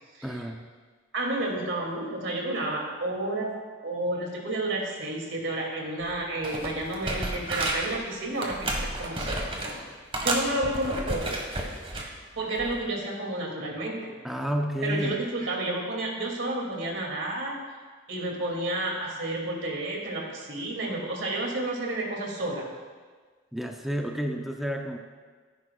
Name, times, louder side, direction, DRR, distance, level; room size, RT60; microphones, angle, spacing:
voice 1, 0.2-0.7 14.2-15.2 23.5-25.0, equal, ahead, 2 dB, 0.6 m, -30 dB
voice 2, 1.1-3.6 3.8-9.4 9.8-9.9 10.2-11.3 12.3-14.1 14.8-17.6 18.1-22.7, right 1 dB, 80° right, -1 dB, 2.5 m, -31 dB
sound 1, 6.0-6.2 6.4-8.0 8.4-9.8 10.1-12.1 12.6-12.8, right 2 dB, 30° right, 1.5 m, -31 dB
16.5 x 10.0 x 2.4 m, 1.5 s
head